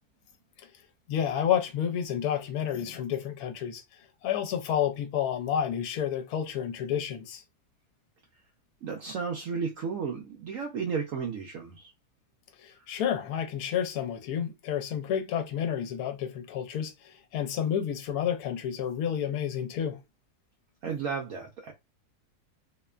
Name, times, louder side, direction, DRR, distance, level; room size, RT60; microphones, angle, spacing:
voice 1, 1.1-3.8 4.2-7.4 12.6-20.0, left 9 dB, 75° left, 1.1 m, -30 dB
voice 2, 8.8-11.9 20.8-21.7, right 5 dB, 70° right, 0.9 m, -33 dB
2.8 x 2.1 x 2.3 m
omnidirectional pair, 1.7 m